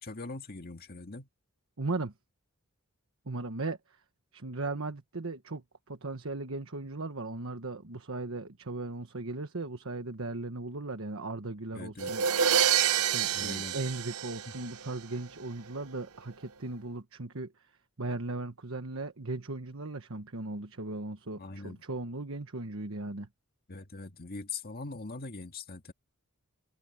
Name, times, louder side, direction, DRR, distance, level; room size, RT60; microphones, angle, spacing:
voice 1, 0.0-1.3 11.7-12.1 13.3-13.8 21.4-21.8 23.7-25.9, left 3 dB, 45° left, 2.0 m, -42 dB
voice 2, 1.8-2.1 3.3-4.0 4.3-12.2 13.0-17.5 18.0-23.3, right 2 dB, 65° right, 1.4 m, -37 dB
sound 1, 12.0-14.9, right 8 dB, 85° right, 0.8 m, -27 dB
head